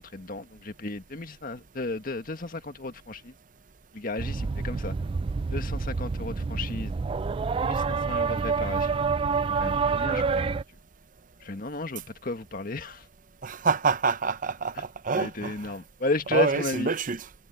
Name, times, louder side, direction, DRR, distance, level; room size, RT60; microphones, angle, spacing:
voice 1, 0.0-3.3 3.9-4.9 5.5-6.9 7.6-9.0 9.6-10.6 11.4-13.0 15.1-16.9, left 2 dB, 50° left, 1.7 m, -33 dB
sound 1, 4.2-10.6, right 4 dB, 30° right, 0.3 m, -27 dB
voice 2, 13.4-15.7 16.3-17.5, right 4 dB, 45° right, 0.7 m, -27 dB
head